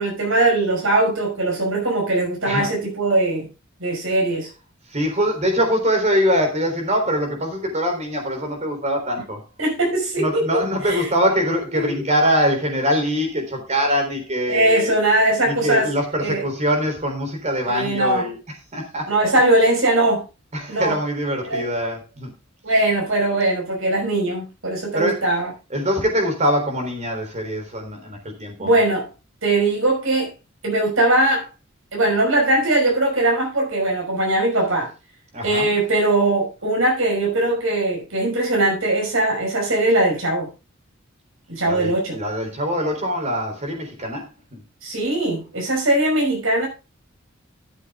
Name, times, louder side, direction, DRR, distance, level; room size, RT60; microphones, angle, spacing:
voice 1, 0.0-3.5 3.8-4.5 9.6-10.6 10.9-11.1 11.7-12.1 14.5-15.9 16.2-16.4 17.7-18.2 19.1-20.2 20.7-20.9 21.4-21.6 22.6-25.5 28.6-29.1 29.4-30.3 30.6-31.5 31.9-34.9 35.4-40.5 41.5-42.2 44.8-46.7, right 2 dB, 90° right, 5.5 m, -20 dB
voice 2, 4.9-9.4 10.2-15.0 15.5-18.4 18.7-19.1 20.5-22.3 24.9-25.2 25.7-28.7 35.3-35.7 41.7-44.6, equal, 35° right, 3.7 m, -23 dB
13.0 x 7.6 x 3.7 m
head